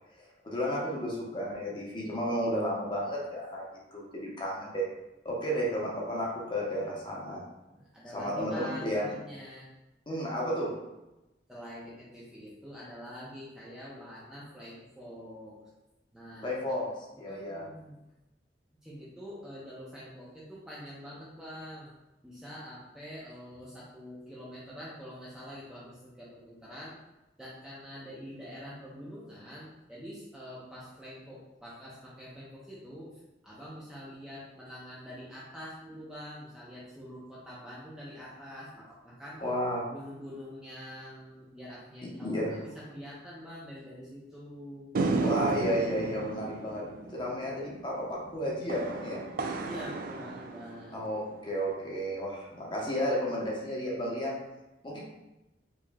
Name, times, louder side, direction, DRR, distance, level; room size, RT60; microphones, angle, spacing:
voice 1, 0.4-3.6 3.9-4.8 5.2-7.4 8.1-9.1 10.1-10.7 16.4-16.9 17.2-17.6 39.4-39.8 42.2-42.5 45.2-46.8 47.1-49.2 50.9-54.4 54.8-55.0, equal, 25° left, -4 dB, 0.8 m, -32 dB
voice 2, 7.7-9.7 11.5-15.6 16.1-16.5 17.1-18.0 18.8-21.9 22.2-27.0 27.4-39.4 39.9-44.9 49.6-51.0 54.9-55.0, equal, 5° right, -8 dB, 0.6 m, -45 dB
sound 1, 44.9-51.4, right 3 dB, 50° right, 0.3 m, -34 dB
4.6 x 3.0 x 2.2 m, 0.98 s
head